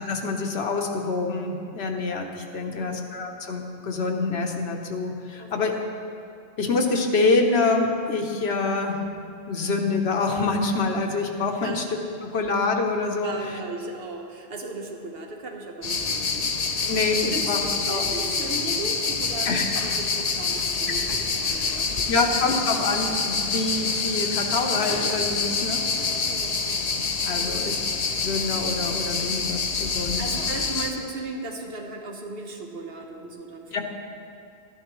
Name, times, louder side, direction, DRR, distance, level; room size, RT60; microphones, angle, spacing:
voice 1, 0.0-5.7 6.6-9.0 9.5-11.8 12.3-13.3 16.9-17.6 17.9-18.0 19.5-19.7 21.5-21.8 22.1-25.8 27.2-27.8 28.2-30.2 33.7-33.8, left 3 dB, 90° left, 3 dB, 1.2 m, -26 dB
voice 2, 2.7-3.0 5.4-5.7 11.5-11.9 13.2-16.5 17.3-21.1 21.4-22.1 25.9-26.8 27.4-27.7 30.2-33.8, right 2 dB, 70° right, 1 dB, 1.3 m, -36 dB
sound 1, 15.8-30.9, left 4 dB, 45° left, 0.7 m, -26 dB
12.5 x 10.5 x 3.1 m, 2.5 s
omnidirectional pair, 1.0 m